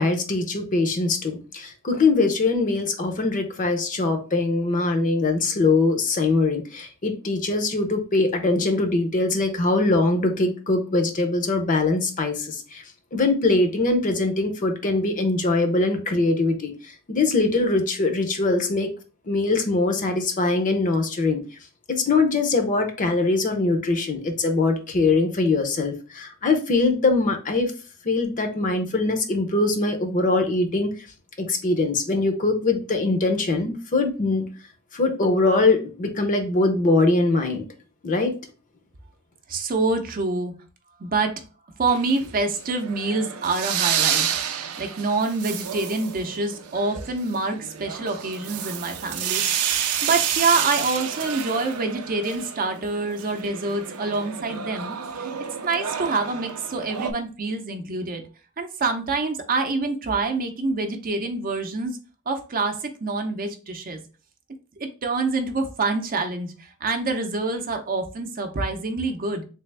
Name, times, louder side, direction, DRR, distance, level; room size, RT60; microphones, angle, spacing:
voice 1, 0.0-12.8 13.1-18.9 19.2-21.4 21.9-27.7 28.0-31.1 31.4-34.5 34.9-37.6 38.0-38.4, left 3 dB, 35° left, 6 dB, 0.6 m, -22 dB
voice 2, 39.5-40.5 41.0-41.4 41.8-49.4 49.7-55.3 55.6-58.2 58.6-62.0 62.3-64.0 64.8-69.4, right 3 dB, 40° right, 5 dB, 0.6 m, -26 dB
sound 1, 41.9-57.1, right 9 dB, 85° right, 0.5 m, -30 dB
3.4 x 3.3 x 3.3 m, 0.35 s
head